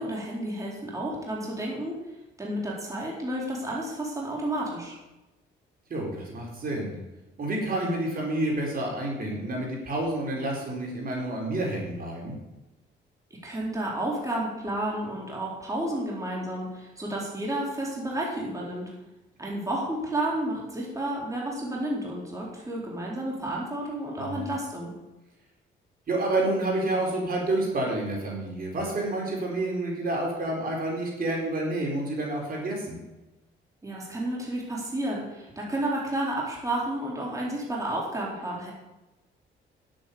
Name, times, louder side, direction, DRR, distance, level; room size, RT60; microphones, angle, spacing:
voice 1, 0.0-2.0 2.4-5.0 13.4-18.9 19.4-24.9 33.8-38.7, right 1 dB, 15° right, -3 dB, 4.3 m, -31 dB
voice 2, 5.9-6.9 7.4-12.3 24.2-24.4 26.1-33.0, right 1 dB, 50° right, -1 dB, 4.4 m, -29 dB
10.0 x 9.0 x 7.0 m, 1.0 s
cardioid pair, 90°, 20 cm